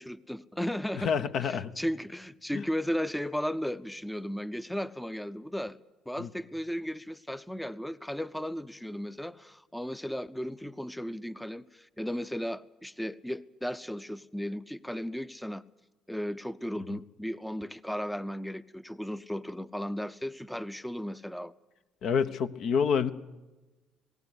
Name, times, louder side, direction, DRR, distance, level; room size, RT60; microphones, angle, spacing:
voice 1, 0.0-5.8 6.1-15.6 16.1-21.5, equal, 5° left, 0.7 m, -35 dB
voice 2, 0.9-1.7 2.5-2.6 6.2-6.3 16.9-17.0 22.0-23.1, left 6 dB, 60° left, 0.9 m, -28 dB
20.0 x 18.0 x 8.0 m
hypercardioid pair, 50°, 0 cm